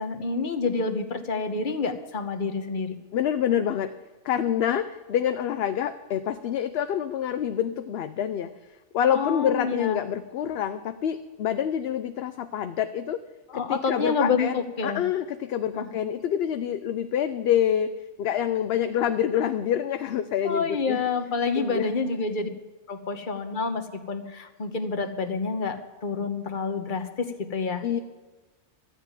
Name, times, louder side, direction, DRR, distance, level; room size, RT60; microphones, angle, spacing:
voice 1, 0.0-2.9 9.1-10.0 13.5-15.0 15.7-15.9 20.4-22.5 22.9-27.8, left 4 dB, 45° left, 6 dB, 1.2 m, -28 dB
voice 2, 3.1-3.9 4.2-8.5 8.9-13.2 13.5-17.9 18.2-21.0 21.6-21.9 27.8-28.0, left 9 dB, 65° left, 10 dB, 0.8 m, -27 dB
13.5 x 7.3 x 9.5 m, 1.2 s
omnidirectional pair, 1.2 m